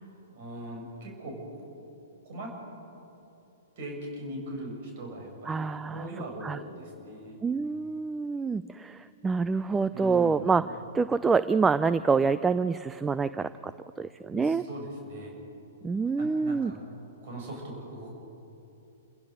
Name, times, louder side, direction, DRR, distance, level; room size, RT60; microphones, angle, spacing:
voice 1, 0.3-1.4 2.2-2.5 3.8-5.7 5.9-7.4 9.9-10.5 14.3-15.3 16.2-16.8 17.2-18.1, right 1 dB, 50° right, 0 dB, 7.1 m, -40 dB
voice 2, 5.5-6.1 6.4-6.6 7.4-10.6 10.9-13.7 14.0-14.6 15.8-16.7, right 4 dB, 10° right, 14 dB, 0.5 m, -26 dB
28.0 x 16.5 x 6.6 m, 3.0 s
figure-of-eight pair, 115°, 0 cm